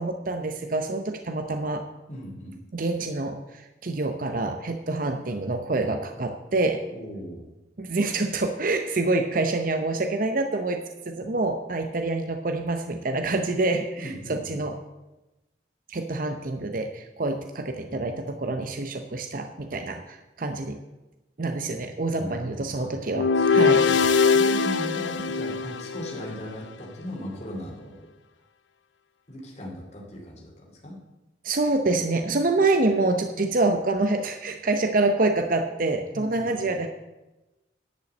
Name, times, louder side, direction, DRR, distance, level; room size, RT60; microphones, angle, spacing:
voice 1, 0.0-1.8 2.7-3.4 3.8-6.8 7.8-14.8 15.9-20.8 21.4-23.8 31.4-36.9, right 2 dB, 50° right, 6 dB, 0.7 m, -26 dB
voice 2, 2.1-2.6 6.9-7.5 14.0-14.6 22.2-22.9 23.3-28.1 29.3-31.0 33.4-33.5 36.1-36.7, equal, 40° left, -1 dB, 2.5 m, -38 dB
sound 1, 23.1-26.4, left 5 dB, 85° left, 0.5 m, -22 dB
10.5 x 5.7 x 7.8 m, 1.0 s
head